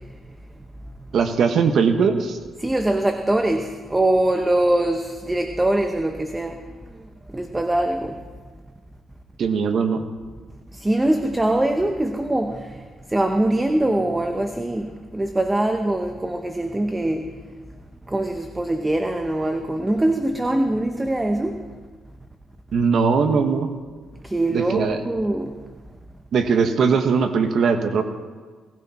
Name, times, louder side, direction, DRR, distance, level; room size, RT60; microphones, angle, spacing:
voice 1, 1.1-2.4 9.4-10.0 22.7-23.7 24.5-25.0 26.3-28.0, right 5 dB, 60° right, 7 dB, 1.4 m, -20 dB
voice 2, 2.6-6.7 7.3-8.2 10.7-17.3 18.1-21.6 24.2-25.5, right 1 dB, 15° right, 6 dB, 1.0 m, -23 dB
18.5 x 15.0 x 4.3 m, 1.4 s
cardioid pair, 90°, 0 cm